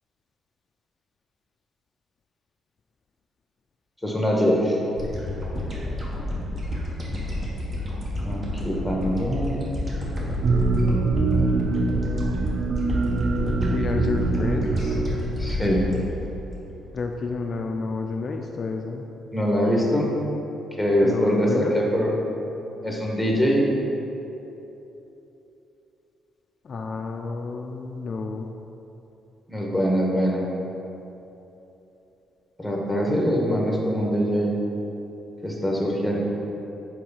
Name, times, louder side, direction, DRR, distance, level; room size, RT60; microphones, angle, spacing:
voice 1, 4.0-4.8 8.2-9.7 15.4-15.9 19.3-20.1 20.8-22.2 22.8-23.6 29.5-30.5 32.6-34.6 35.4-36.2, equal, ahead, -2 dB, 1.3 m, -23 dB
sound 1, 5.0-17.4, left 1 dB, 35° right, 1.3 m, -30 dB
sound 2, 10.4-15.8, right 3 dB, 50° right, 0.5 m, -24 dB
voice 2, 13.7-15.0 16.9-19.0 21.0-21.7 26.6-28.5, left 4 dB, 50° left, 3 dB, 0.3 m, -30 dB
4.7 x 4.4 x 5.5 m, 3.0 s
cardioid pair, 90°, 0 cm